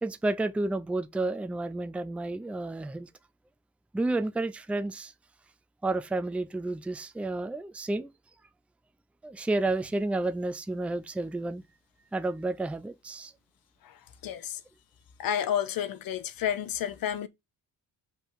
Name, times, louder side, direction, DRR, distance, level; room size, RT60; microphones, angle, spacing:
voice 1, 0.0-3.1 3.9-5.1 5.8-8.1 9.2-11.6 12.1-13.3, right 2 dB, 5° right, 0.5 m, -31 dB
voice 2, 14.2-14.6 15.2-17.3, left 10 dB, 75° left, 1.2 m, -30 dB
5.7 x 3.8 x 6.0 m
cardioid pair, 160°, 35 cm